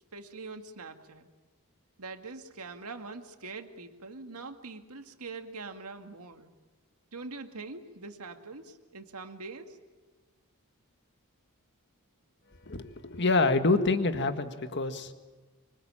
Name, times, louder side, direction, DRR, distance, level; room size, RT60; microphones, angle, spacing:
voice 1, 0.1-1.3 2.0-6.5 7.1-9.8, right 3 dB, 80° right, 6 dB, 2.1 m, -43 dB
voice 2, 12.6-15.1, left 3 dB, 50° left, 8 dB, 1.7 m, -26 dB
25.5 x 24.5 x 8.9 m, 1.3 s
head